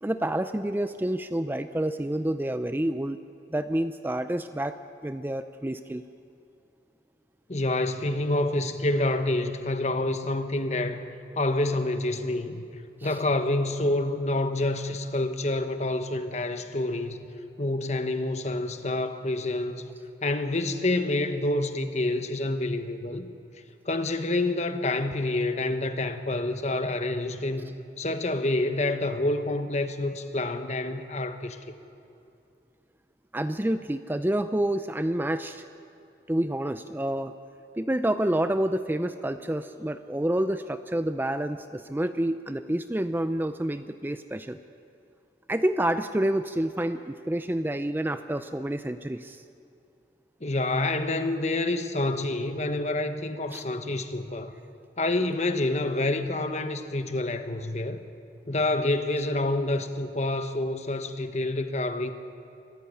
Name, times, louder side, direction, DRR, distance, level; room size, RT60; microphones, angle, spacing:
voice 1, 0.0-3.2 3.5-4.8 5.0-6.0 13.0-13.2 33.3-35.6 36.3-37.3 37.8-44.6 45.5-49.4 53.5-53.6, right 1 dB, 10° right, 10 dB, 0.5 m, -28 dB
voice 2, 7.5-17.2 17.6-19.9 20.2-23.3 23.8-27.6 28.0-31.6 50.4-54.5 55.0-58.0 58.5-62.1, left 2 dB, 40° left, 8 dB, 1.2 m, -28 dB
25.0 x 14.0 x 9.5 m, 2.6 s
head